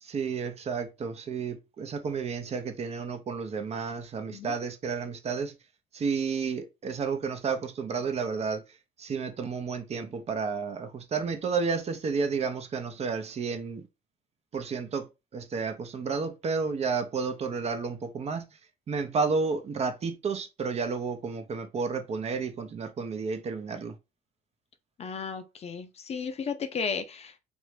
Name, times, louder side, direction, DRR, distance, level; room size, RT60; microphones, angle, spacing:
voice 1, 0.0-5.5 5.9-8.6 9.0-13.9 14.5-18.4 18.9-24.0, right 5 dB, 40° right, 0.7 m, -31 dB
voice 2, 25.0-27.4, left 5 dB, 40° left, 0.5 m, -34 dB
3.2 x 2.6 x 3.2 m
cardioid pair, 110°, 17 cm